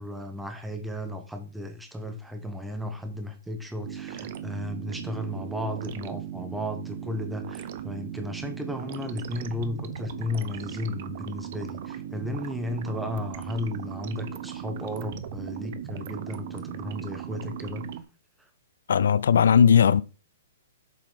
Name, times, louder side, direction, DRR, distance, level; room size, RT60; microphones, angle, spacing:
voice 1, 0.0-17.8, left 1 dB, 5° right, 0.8 m, -34 dB
sound 1, 3.9-18.0, right 10 dB, 40° right, 0.7 m, -38 dB
voice 2, 18.9-20.0, left 7 dB, 75° left, 0.4 m, -18 dB
7.4 x 3.9 x 5.2 m
hypercardioid pair, 170°, 0 cm